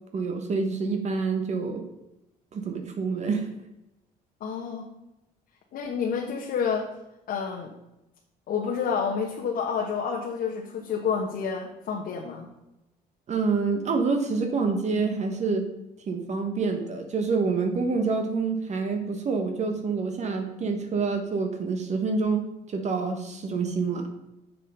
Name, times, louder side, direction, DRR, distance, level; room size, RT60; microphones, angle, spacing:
voice 1, 0.1-1.9 2.5-3.5 13.3-15.7 16.1-24.1, right 4 dB, 45° right, 5 dB, 1.3 m, -27 dB
voice 2, 4.4-4.9 5.7-6.9 7.3-7.7 8.5-12.5, left 6 dB, 60° left, 0 dB, 1.3 m, -29 dB
7.2 x 6.9 x 5.5 m, 0.93 s
cardioid pair, 110°, 17 cm